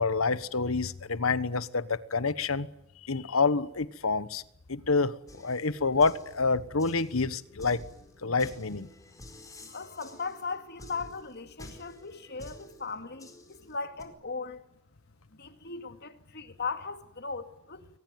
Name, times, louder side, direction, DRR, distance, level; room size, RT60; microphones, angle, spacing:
voice 1, 0.0-2.7 3.1-4.4 4.7-7.8 8.2-8.9, left 4 dB, 80° left, 1.2 m, -27 dB
sound 1, 5.3-14.0, left 1 dB, 15° left, 4.6 m, -51 dB
voice 2, 9.6-14.6 15.3-17.9, left 4 dB, 50° left, 2.3 m, -38 dB
23.0 x 20.0 x 9.3 m
head